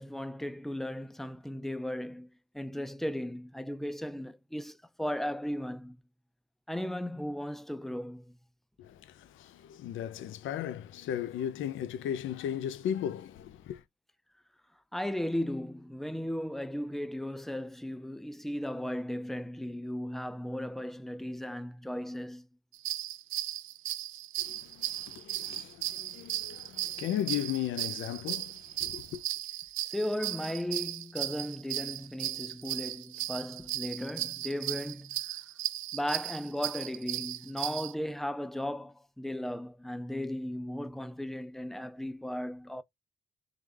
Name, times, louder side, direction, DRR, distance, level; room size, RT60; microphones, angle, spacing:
voice 1, 0.0-2.3 2.5-6.0 6.7-8.4 14.9-22.5 29.9-35.4 35.9-42.8, left 1 dB, ahead, 0.5 m, -36 dB
voice 2, 8.8-13.8 24.4-29.2, left 10 dB, 80° left, 0.6 m, -36 dB
sound 1, 22.7-37.9, right 14 dB, 85° right, 0.5 m, -36 dB
3.8 x 3.3 x 3.5 m
cardioid pair, 90°, 20 cm